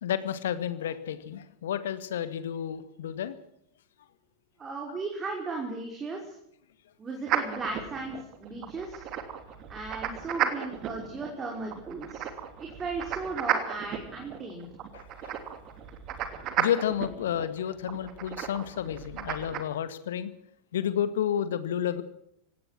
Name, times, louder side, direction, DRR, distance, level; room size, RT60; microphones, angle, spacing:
voice 1, 0.0-3.4 14.9-15.0 16.6-20.3 20.7-22.0, left 9 dB, 60° left, 12 dB, 2.1 m, -31 dB
voice 2, 4.6-6.4 7.0-9.1 9.7-12.3 12.6-14.7, right 3 dB, 20° right, 0 dB, 5.7 m, -36 dB
sound 1, 7.3-19.6, right 9 dB, 35° right, 3.0 m, -34 dB
25.0 x 18.0 x 6.2 m, 0.73 s
figure-of-eight pair, 90°, 0 cm